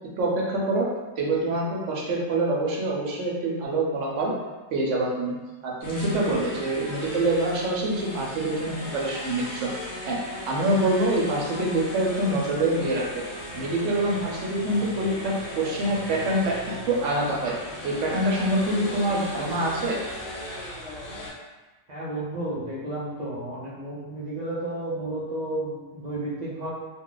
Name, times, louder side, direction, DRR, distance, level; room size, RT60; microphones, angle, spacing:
voice 1, 0.2-0.9 1.2-4.3 4.7-5.3 5.6-9.7 10.0-10.2 10.5-13.2 13.5-16.5 16.9-17.5 17.8-20.0, right 1 dB, 75° right, -2 dB, 0.9 m, -25 dB
sound 1, 5.8-21.3, left 1 dB, 65° left, 1.1 m, -37 dB
voice 2, 21.9-26.7, right 1 dB, 50° right, -7 dB, 0.5 m, -32 dB
2.4 x 2.3 x 3.8 m, 1.2 s
omnidirectional pair, 1.3 m